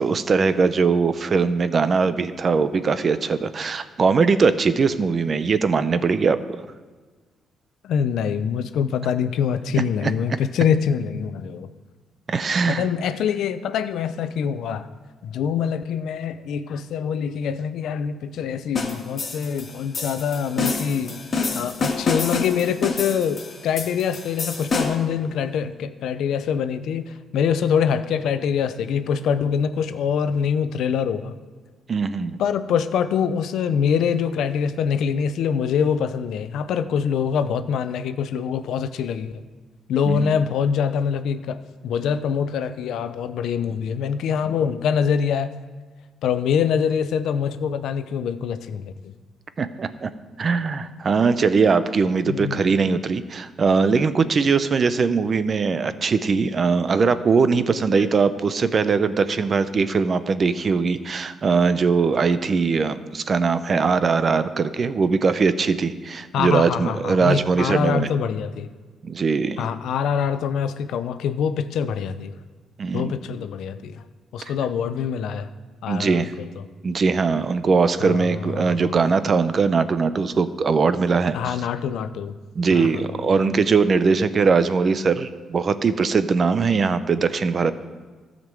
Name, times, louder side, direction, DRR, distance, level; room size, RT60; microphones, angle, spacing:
voice 1, 0.0-6.4 9.8-10.1 12.3-12.9 31.9-32.4 40.1-40.3 49.6-50.1 50.4-68.1 69.0-69.7 72.8-73.1 75.9-76.3 76.8-81.6 82.5-87.7, right 5 dB, 45° right, 13 dB, 0.6 m, -21 dB
voice 2, 7.8-11.7 12.7-14.8 15.2-21.2 21.5-31.3 32.4-39.3 39.9-45.5 46.2-48.8 52.3-52.6 57.9-58.1 66.3-68.7 69.6-72.3 72.9-74.0 74.3-75.5 75.8-76.5 78.0-78.9 81.3-82.3 82.7-82.9, left 7 dB, 80° left, 11 dB, 0.6 m, -24 dB
sound 1, 18.8-25.1, left 4 dB, 40° left, 1.9 m, -28 dB
13.0 x 5.2 x 7.6 m, 1.4 s
cardioid pair, 90°, 0 cm